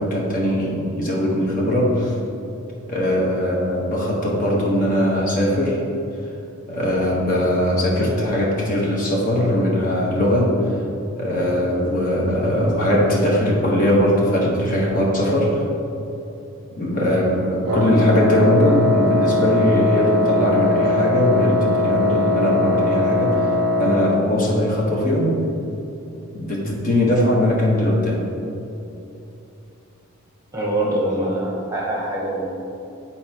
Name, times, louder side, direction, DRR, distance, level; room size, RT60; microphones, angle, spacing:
voice 1, 0.0-2.1 2.9-5.8 6.7-10.8 11.2-15.6 16.7-25.4 26.3-28.2, left 1 dB, 40° left, -3 dB, 1.2 m, -20 dB
Wind instrument woodwind instrument, 17.7-24.3, left 2 dB, 85° right, 0.4 m, -20 dB
voice 2, 30.5-32.5, right 1 dB, 15° right, -4 dB, 0.9 m, -24 dB
10.5 x 4.3 x 2.9 m, 2.8 s
head